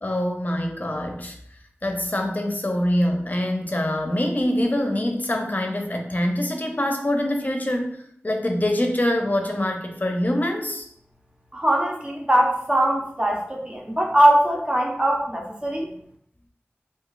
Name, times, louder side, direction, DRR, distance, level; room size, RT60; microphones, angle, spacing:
voice 1, 0.0-1.3 1.8-10.8, left 1 dB, 40° left, 2 dB, 0.6 m, -24 dB
voice 2, 11.5-15.9, right 1 dB, 20° right, 0 dB, 0.7 m, -21 dB
2.6 x 2.3 x 3.8 m, 0.67 s
wide cardioid pair, 40°, 4 cm